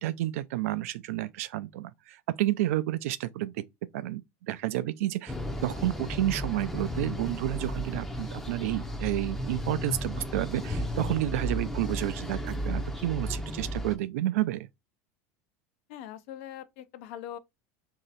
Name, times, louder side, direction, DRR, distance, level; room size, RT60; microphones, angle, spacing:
voice 1, 0.0-3.6 3.9-5.3 5.6-14.7, right 15 dB, 80° right, 0.4 m, -30 dB
sound 1, 5.3-14.0, equal, 5° left, 0.5 m, -34 dB
voice 2, 15.9-17.4, left 11 dB, 65° left, 0.6 m, -42 dB
3.1 x 2.8 x 3.9 m
supercardioid pair, 145°, 8 cm